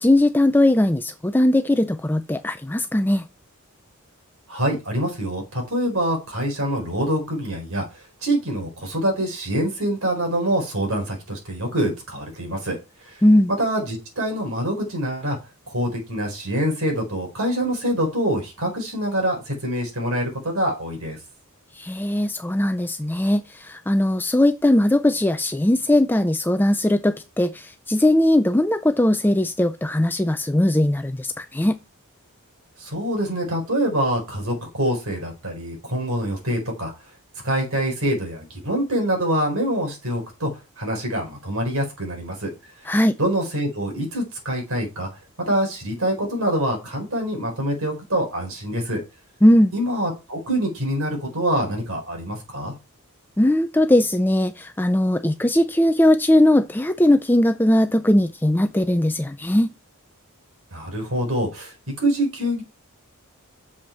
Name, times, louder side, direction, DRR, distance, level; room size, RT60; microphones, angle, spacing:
voice 1, 0.0-3.2 13.2-13.5 21.8-31.8 42.9-43.1 49.4-49.7 53.4-59.7, left 1 dB, 10° left, 0.5 m, -19 dB
voice 2, 4.5-7.8 8.2-12.8 13.1-13.2 13.6-15.4 15.7-21.2 32.8-36.9 37.4-40.5 40.8-42.5 43.2-45.1 45.4-49.0 49.7-52.7 60.7-62.6, right 1 dB, 65° right, 4.5 m, -25 dB
7.9 x 7.2 x 4.6 m
head